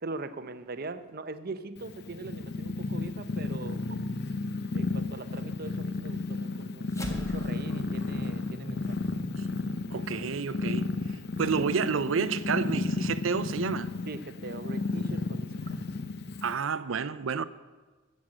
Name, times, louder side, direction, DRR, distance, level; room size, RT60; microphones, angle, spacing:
voice 1, 0.0-4.0 4.7-9.0 14.1-15.8, right 3 dB, 50° right, 0.7 m, -41 dB
Purr, 1.8-16.5, left 3 dB, 55° left, 0.6 m, -33 dB
sound 1, 6.9-11.5, equal, 15° left, 1.3 m, -44 dB
voice 2, 9.9-10.9 11.4-13.9 16.4-17.4, right 5 dB, 85° right, 0.6 m, -29 dB
14.5 x 6.5 x 7.6 m
head